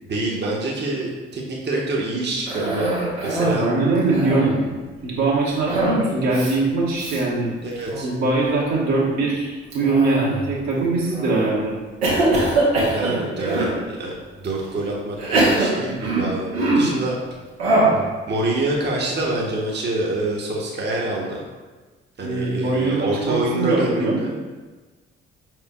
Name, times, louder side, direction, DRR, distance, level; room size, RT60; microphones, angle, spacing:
voice 1, 0.0-2.9 3.2-3.7 7.6-8.1 12.8-17.2 18.3-21.4 22.2-24.4, right 2 dB, 35° right, -3 dB, 0.9 m, -26 dB
Cough, 2.5-3.7 4.0-4.6 5.7-6.0 6.3-6.5 7.0-7.2 7.8-8.2 9.7-10.5 11.1-11.5 12.0-13.8 14.4-14.5 15.2-17.0 17.6-18.0, right 2 dB, 90° right, 0.9 m, -22 dB
voice 2, 3.5-4.7 5.0-7.5 8.0-11.7 22.2-24.2, right 3 dB, 70° right, -6 dB, 1.3 m, -22 dB
5.0 x 4.5 x 2.3 m, 1.3 s
hypercardioid pair, 45°, 30 cm